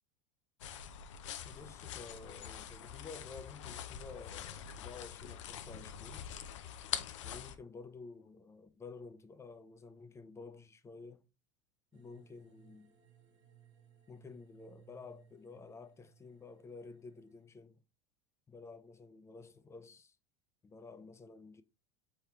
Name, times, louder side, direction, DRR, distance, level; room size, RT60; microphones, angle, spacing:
sound 1, 0.6-7.6, left 9 dB, 75° left, 0.5 m, -44 dB
voice 1, 1.4-6.3 7.2-11.2 11.9-12.9 14.1-17.8 18.5-20.2 20.6-21.6, left 4 dB, 15° left, 0.5 m, -51 dB
sound 2, 11.9-17.5, right 8 dB, 70° right, 1.4 m, -64 dB
4.4 x 3.4 x 3.0 m
hypercardioid pair, 90°, 16 cm